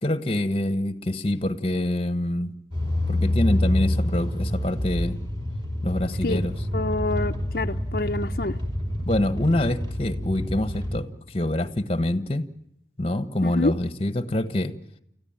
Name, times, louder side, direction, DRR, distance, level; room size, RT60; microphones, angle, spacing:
voice 1, 0.0-2.5 3.1-5.2 5.8-6.5 9.1-12.4 13.0-14.7, left 1 dB, 30° left, 11 dB, 1.3 m, -25 dB
sound 1, 2.7-11.0, left 1 dB, 25° right, 5.1 m, -27 dB
voice 2, 6.7-8.6 13.4-13.7, left 2 dB, 55° left, 6 dB, 0.9 m, -27 dB
30.0 x 14.5 x 9.0 m, 0.74 s
head